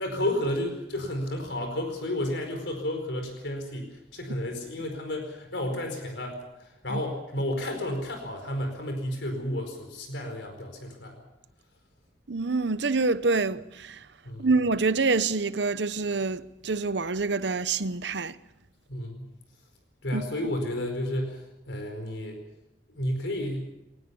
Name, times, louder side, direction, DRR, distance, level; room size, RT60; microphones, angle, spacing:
voice 1, 0.0-11.3 14.2-14.5 18.9-19.3 20.0-22.4 22.9-23.7, left 1 dB, 80° left, 4.7 m, -32 dB
voice 2, 12.3-14.1 14.4-18.4 20.1-20.2, right 3 dB, 75° right, 0.9 m, -26 dB
21.5 x 19.5 x 7.0 m
head